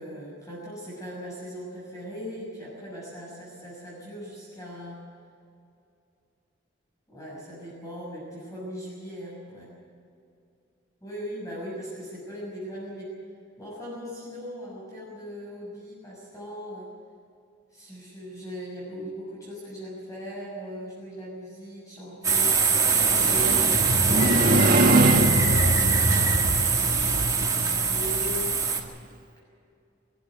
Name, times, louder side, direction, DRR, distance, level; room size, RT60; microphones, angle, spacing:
voice 1, 0.0-5.0 7.1-9.7 11.0-13.2 13.6-16.9 17.7-24.5 25.3-28.6, equal, 20° left, -6 dB, 6.3 m, -39 dB
sound 1, 22.2-28.8, right 5 dB, 20° right, 2.1 m, -23 dB
Motorcycle, 22.9-28.8, right 1 dB, 45° right, 1.4 m, -24 dB
24.0 x 13.0 x 9.3 m, 2.5 s
head